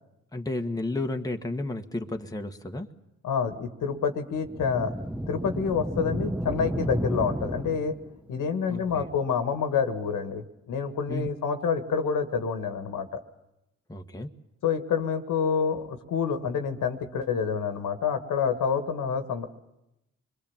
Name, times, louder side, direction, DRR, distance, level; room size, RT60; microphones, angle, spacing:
voice 1, 0.3-2.9 8.7-9.1 11.1-11.3 13.9-14.3, left 2 dB, 10° left, 4 dB, 1.5 m, -32 dB
voice 2, 3.2-4.9 5.3-8.0 8.3-13.2 14.6-19.5, left 6 dB, 70° left, 7 dB, 1.8 m, -28 dB
sound 1, 4.4-8.2, equal, 5° right, 0.9 m, -32 dB
25.5 x 22.0 x 7.4 m, 0.90 s
supercardioid pair, 50°, 32 cm